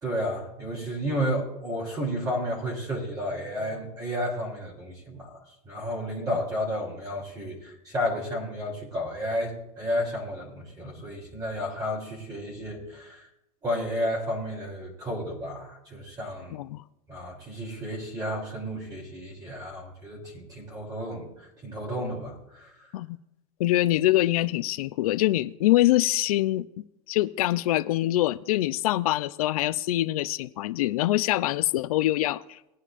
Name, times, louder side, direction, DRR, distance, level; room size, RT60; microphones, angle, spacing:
voice 1, 0.0-5.4 5.6-13.3 13.6-16.6 17.1-21.3 21.6-22.9, equal, 20° right, -3 dB, 3.3 m, -32 dB
voice 2, 16.5-16.8 22.9-23.2 23.6-26.7 27.1-32.6, left 15 dB, 85° left, 13 dB, 0.5 m, -24 dB
20.0 x 9.8 x 2.5 m, 0.89 s
supercardioid pair, 145°, 18 cm